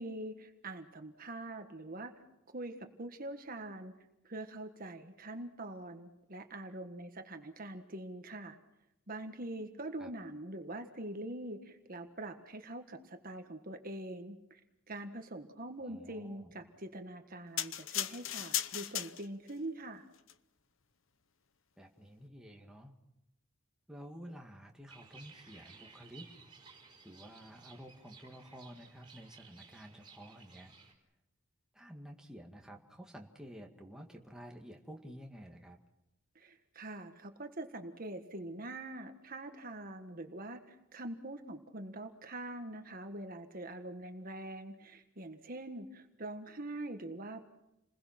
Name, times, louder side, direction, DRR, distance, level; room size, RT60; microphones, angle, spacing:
voice 1, 0.0-2.1 2.5-3.9 4.2-8.6 9.1-14.6 14.9-20.0 36.3-47.5, right 1 dB, 40° right, 6 dB, 1.6 m, -44 dB
voice 2, 15.8-16.5 21.8-22.9 23.9-26.3 27.0-30.7 31.7-35.8, equal, 5° right, 1 dB, 2.0 m, -51 dB
sound 1, 17.6-19.5 20.2-20.3, left 12 dB, 65° left, 0.9 m, -36 dB
sound 2, 24.9-30.9, right 5 dB, 25° right, 4.4 m, -57 dB
30.0 x 21.0 x 6.0 m, 0.87 s
head